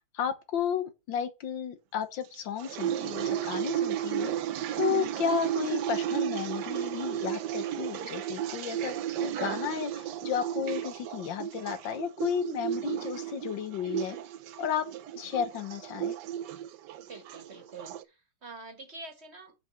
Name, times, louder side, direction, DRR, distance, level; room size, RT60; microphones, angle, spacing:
voice 1, 0.1-4.3 4.8-14.2 14.6-14.9 15.2-16.2, left 8 dB, 85° left, 1.8 m, -33 dB
sound 1, 2.3-18.0, right 10 dB, 70° right, 1.2 m, -33 dB
voice 2, 12.7-13.1 15.2-15.4 17.0-19.5, right 3 dB, 35° right, 1.8 m, -47 dB
6.1 x 5.2 x 6.3 m
omnidirectional pair, 2.0 m